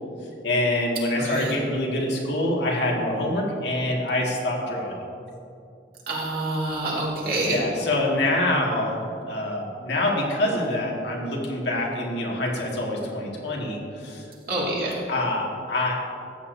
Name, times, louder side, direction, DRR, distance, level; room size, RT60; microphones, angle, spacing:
voice 1, 0.4-5.0 7.4-14.3 15.1-15.9, left 1 dB, 75° left, -2 dB, 1.9 m, -25 dB
voice 2, 1.2-1.5 6.1-7.6 14.5-14.9, right 2 dB, 55° right, -5 dB, 2.3 m, -27 dB
14.5 x 8.8 x 2.7 m, 2.6 s
head